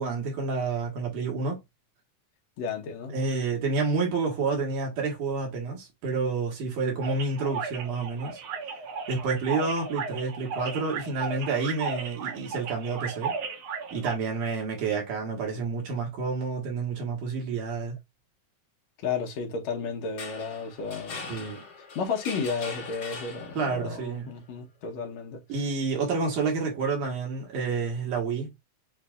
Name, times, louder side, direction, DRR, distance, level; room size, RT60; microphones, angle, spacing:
voice 1, 0.0-1.6 3.1-8.4 9.1-13.3 13.9-18.0 21.3-21.6 23.5-24.3 25.5-28.5, right 4 dB, 85° right, 2.9 m, -29 dB
voice 2, 2.6-3.1 19.0-21.5 22.0-25.4, left 5 dB, 70° left, 2.0 m, -33 dB
sound 1, 7.0-14.2, right 5 dB, 65° right, 1.6 m, -35 dB
sound 2, 20.0-23.9, left 4 dB, 45° left, 1.8 m, -41 dB
6.8 x 2.4 x 2.3 m
omnidirectional pair, 3.5 m